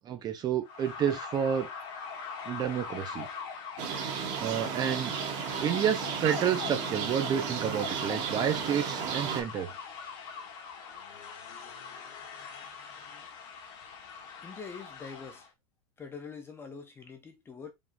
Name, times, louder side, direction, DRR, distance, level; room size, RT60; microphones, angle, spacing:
voice 1, 0.0-1.7 2.5-3.3 4.4-5.1 5.6-9.7, right 8 dB, 25° right, 0.6 m, -30 dB
sound 1, 0.6-15.5, left 6 dB, 50° left, 1.4 m, -42 dB
sound 2, 3.8-9.4, right 7 dB, 45° right, 1.6 m, -34 dB
voice 2, 14.4-15.5 16.0-17.7, left 5 dB, 15° left, 0.7 m, -44 dB
5.1 x 3.6 x 2.6 m
supercardioid pair, 160°, 17 cm